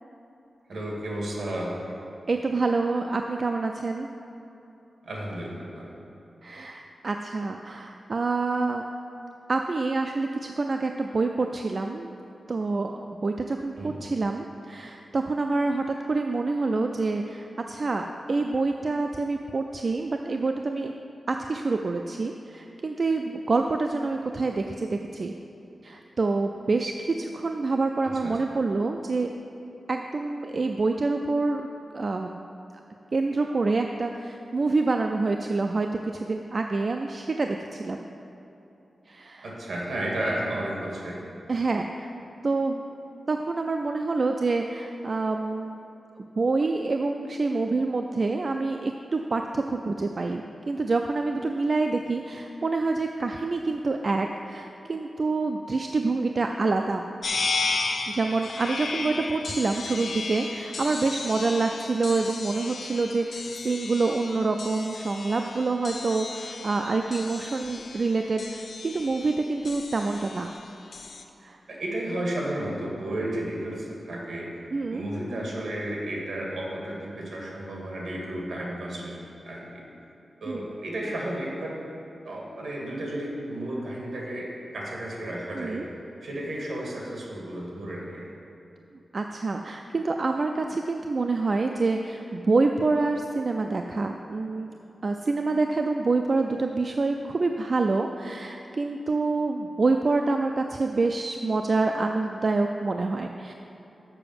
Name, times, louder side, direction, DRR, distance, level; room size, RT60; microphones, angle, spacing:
voice 1, 0.7-1.8 5.0-6.0 13.8-14.0 28.0-28.4 39.4-41.2 71.7-74.5 74.9-79.2 79.4-79.8 80.4-81.8 82.2-85.9 86.2-88.3, right 1 dB, 70° right, -3 dB, 1.9 m, -33 dB
voice 2, 2.3-4.1 6.4-8.8 9.5-12.1 12.5-20.9 21.3-25.4 25.8-29.3 29.9-31.7 31.9-32.5 33.1-38.0 39.1-39.5 41.5-42.1 42.4-42.8 43.3-45.8 46.4-57.0 58.1-70.5 71.4-71.6 74.7-75.0 80.5-80.6 85.5-85.9 89.1-94.7 95.0-103.5, right 3 dB, 45° right, 4 dB, 0.3 m, -27 dB
sound 1, 57.2-71.2, left 4 dB, 60° left, 0.6 m, -34 dB
6.8 x 5.8 x 7.0 m, 2.9 s
wide cardioid pair, 155°, 0 cm